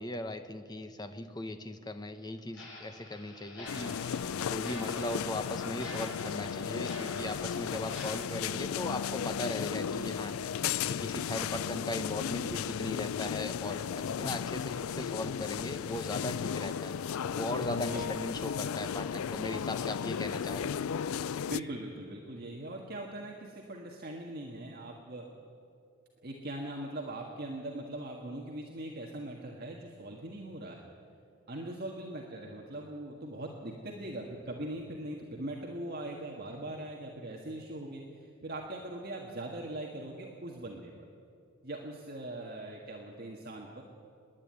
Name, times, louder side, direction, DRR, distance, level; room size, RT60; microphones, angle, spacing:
voice 1, 0.0-16.9 17.3-20.7, left 1 dB, 20° left, 8 dB, 0.9 m, -38 dB
Clock, 2.5-9.7 10.0-10.2 10.7-10.8 11.2-11.3 11.8-11.9 12.4-12.5 13.0-13.2, left 1 dB, 55° left, 7.0 m, -47 dB
sound 1, 3.7-21.6, left 8 dB, 90° left, 0.4 m, -35 dB
voice 2, 17.8-18.1 21.5-25.3 26.2-30.8 31.5-40.9 41.6-43.8, right 1 dB, 45° right, -1 dB, 1.7 m, -41 dB
26.5 x 10.5 x 9.5 m, 2.5 s
head